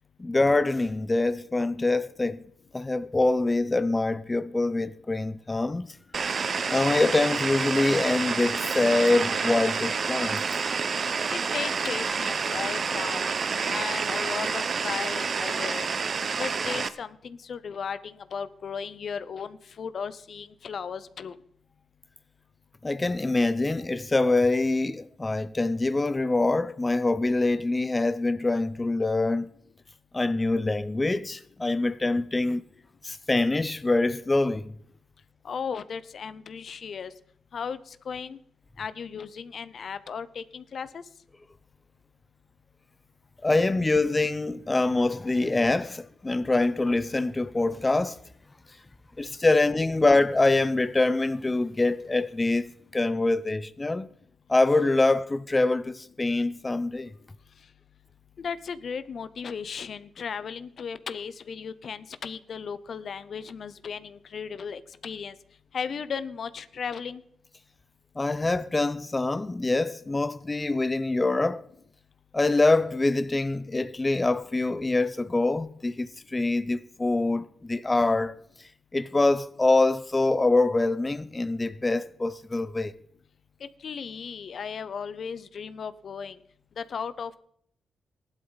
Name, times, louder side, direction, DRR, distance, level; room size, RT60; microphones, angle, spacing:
voice 1, 0.2-2.4 2.7-6.0 6.7-10.4 22.8-29.5 30.1-32.6 33.0-34.7 43.4-48.2 49.2-54.1 54.5-57.1 68.2-71.6 72.3-78.3 78.9-82.9, left 2 dB, 25° left, 0.7 m, -25 dB
sound 1, 6.1-16.9, right 5 dB, 50° right, 0.8 m, -28 dB
voice 2, 11.3-13.3 13.7-15.9 16.4-21.4 35.4-37.1 37.5-38.4 38.8-41.0 58.4-65.3 65.7-67.2 83.8-86.4 86.8-87.4, left 6 dB, 65° left, 0.8 m, -36 dB
15.5 x 11.5 x 4.1 m
cardioid pair, 75°, 0 cm